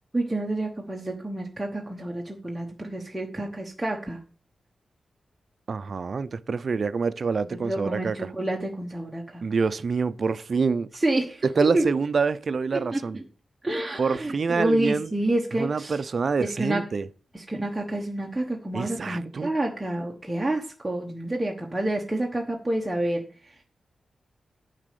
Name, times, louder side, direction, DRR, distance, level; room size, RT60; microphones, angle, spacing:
voice 1, 0.1-4.2 7.5-9.4 10.9-11.4 11.7-11.8 12.9-13.2 13.6-16.0 16.4-16.8 17.3-23.5, right 1 dB, 10° right, 1.0 m, -28 dB
voice 2, 5.7-8.3 9.4-10.9 11.6-13.2 14.0-15.1 15.6-17.1 18.7-19.5, right 5 dB, 45° right, 0.5 m, -26 dB
9.8 x 4.1 x 6.7 m
wide cardioid pair, 165°, 0 cm